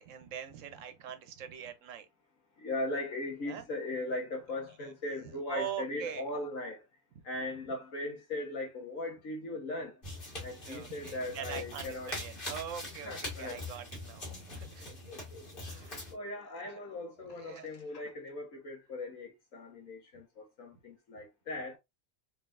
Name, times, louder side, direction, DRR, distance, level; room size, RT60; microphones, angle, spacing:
voice 1, 0.0-2.1 3.5-3.6 4.8-4.9 5.5-6.3 7.2-7.3 10.6-14.9 15.6-16.0 17.4-17.7, right 9 dB, 65° right, 1.0 m, -43 dB
voice 2, 2.6-6.8 7.2-10.0 10.4-12.1 13.0-13.6 14.8-15.6 16.1-21.8, left 2 dB, 65° left, 1.5 m, -39 dB
sound 1, 10.0-16.1, left 2 dB, 40° left, 1.7 m, -43 dB
3.8 x 3.3 x 2.5 m
omnidirectional pair, 1.5 m